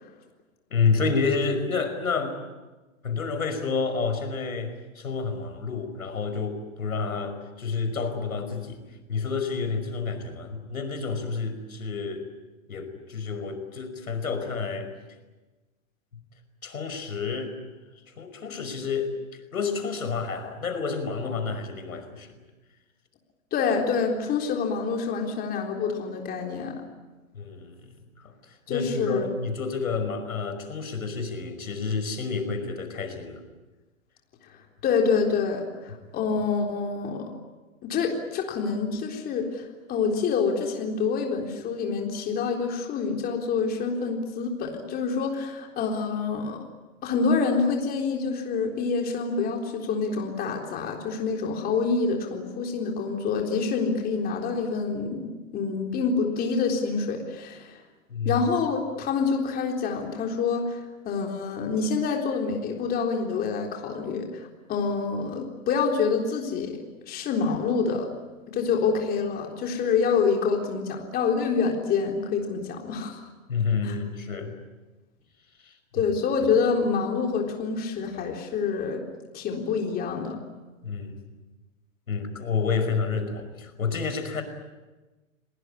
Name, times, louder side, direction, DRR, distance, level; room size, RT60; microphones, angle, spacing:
voice 1, 0.7-2.4 3.0-8.8 9.1-12.3 12.7-14.9 16.6-17.5 18.2-22.4 27.3-33.4 58.1-58.4 73.5-74.5 75.6-76.0 80.8-81.2 82.1-84.4, left 5 dB, 90° left, 8 dB, 5.5 m, -29 dB
voice 2, 23.5-26.7 28.7-29.2 34.8-37.2 37.8-46.6 47.0-57.8 58.2-66.7 67.1-68.1 68.5-73.3 73.8-74.0 75.9-79.0 79.3-80.4, left 5 dB, 20° left, 1 dB, 3.9 m, -27 dB
28.0 x 19.5 x 9.9 m, 1.2 s
hypercardioid pair, 140°, 41 cm